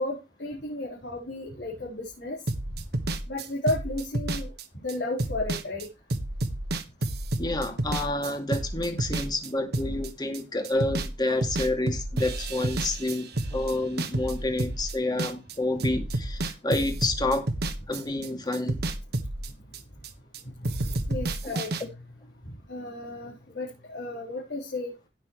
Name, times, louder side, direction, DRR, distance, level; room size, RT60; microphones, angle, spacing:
voice 1, 0.0-2.4 3.3-5.9 20.4-20.8 21.1-21.7 22.7-24.9, left 2 dB, 75° left, 4.1 m, -33 dB
sound 1, 2.5-11.1 11.4-15.5 15.8-20.4 20.6-21.8, right 2 dB, 65° right, 1.4 m, -30 dB
voice 2, 7.4-17.5 17.9-18.8 21.4-21.6, left 2 dB, 25° left, 2.4 m, -29 dB
16.5 x 6.8 x 3.1 m
head